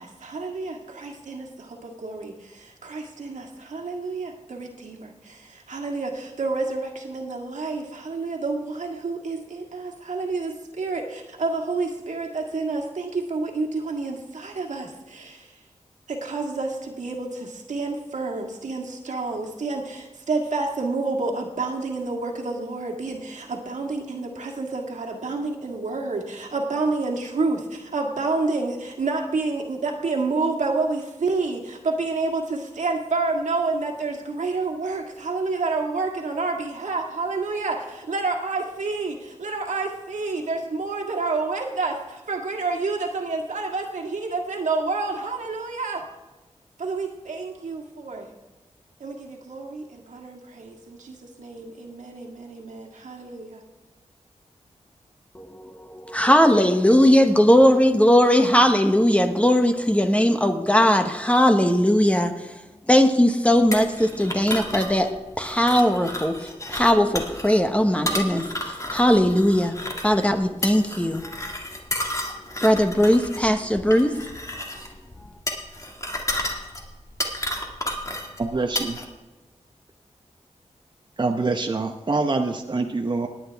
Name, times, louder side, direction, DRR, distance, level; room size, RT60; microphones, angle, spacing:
voice 1, 0.0-15.5 16.1-46.0 46.8-48.3 49.0-53.6, right 3 dB, 85° right, 1 dB, 1.8 m, -29 dB
voice 2, 55.3-62.5 62.9-69.8 70.0-71.5 72.5-74.2, equal, 10° left, 6 dB, 1.0 m, -19 dB
sound 1, 63.7-79.0, left 1 dB, 25° left, 1.8 m, -32 dB
voice 3, 78.4-79.0 81.2-83.3, right 3 dB, 40° right, 3 dB, 0.9 m, -25 dB
19.0 x 8.9 x 3.5 m, 1.1 s
wide cardioid pair, 80°, 12 cm